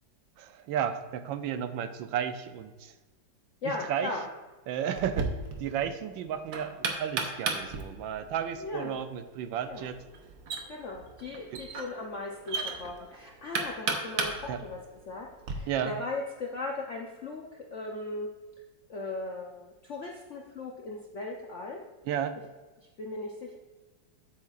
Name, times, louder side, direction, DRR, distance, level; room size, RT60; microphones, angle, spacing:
voice 1, 0.4-2.9 3.6-4.1 4.7-10.0 11.5-11.6 14.5-14.6 15.7-15.9 22.0-22.4, right 9 dB, 80° right, 10 dB, 1.4 m, -33 dB
voice 2, 3.6-4.3 8.6-8.9 9.7-9.9 10.7-14.8 15.1-17.4 17.7-18.3 18.9-21.8 23.0-23.6, left 3 dB, 55° left, -1 dB, 0.8 m, -38 dB
Knock, 4.9-15.5, right 4 dB, 60° right, 1.3 m, -36 dB
9.7 x 8.5 x 2.4 m, 1.2 s
omnidirectional pair, 2.1 m